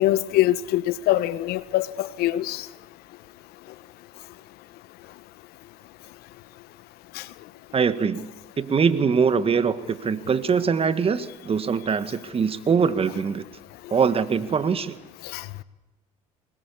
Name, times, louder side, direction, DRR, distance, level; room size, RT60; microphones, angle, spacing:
voice 1, 0.0-2.7 7.2-7.3 15.3-15.4, left 14 dB, 65° left, 1.0 m, -23 dB
voice 2, 7.7-8.3 8.6-13.5 13.9-15.0, right 6 dB, 35° right, 1.8 m, -23 dB
24.5 x 21.0 x 8.5 m
hypercardioid pair, 75°, 18 cm